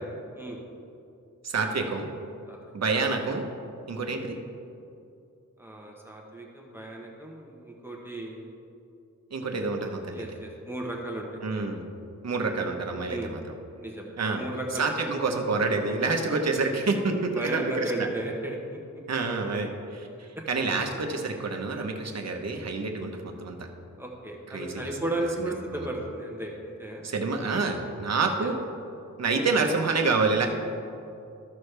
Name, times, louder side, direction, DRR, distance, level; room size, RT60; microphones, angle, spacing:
voice 1, 1.4-2.1 2.7-3.4 3.9-4.4 9.3-10.2 11.4-11.8 12.2-13.4 14.2-14.4 14.8-18.1 19.1-23.6 24.5-24.9 27.0-28.6 29.2-30.5, right 3 dB, 55° right, 3 dB, 1.0 m, -28 dB
voice 2, 5.6-8.5 10.1-11.4 13.1-13.3 13.8-15.1 17.3-18.8 24.0-27.0 28.4-28.5, right 1 dB, 5° right, -2 dB, 1.0 m, -35 dB
13.5 x 6.3 x 3.3 m, 2.6 s
wide cardioid pair, 150°, 32 cm